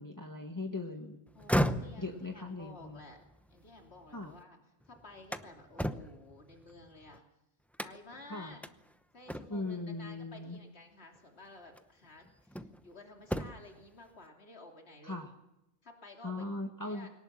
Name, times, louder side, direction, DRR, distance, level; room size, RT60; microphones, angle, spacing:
voice 1, 0.0-1.2 2.0-3.0 4.1-4.3 8.3-8.5 9.5-10.6 15.0-15.3 16.2-17.1, left 2 dB, 15° left, 2 dB, 1.6 m, -39 dB
voice 2, 1.3-3.2 3.5-4.6 4.9-7.2 7.8-8.6 9.1-15.2 15.8-16.5 16.8-17.1, left 2 dB, 70° left, 2 dB, 3.2 m, -53 dB
sound 1, 1.3-4.4 4.8-7.2 7.7-8.2 8.6-8.7 9.3-9.8 11.0-11.2 11.7-12.9 13.2-13.8, equal, ahead, 0.7 m, -36 dB
23.5 x 18.5 x 7.4 m, 0.88 s
omnidirectional pair, 1.1 m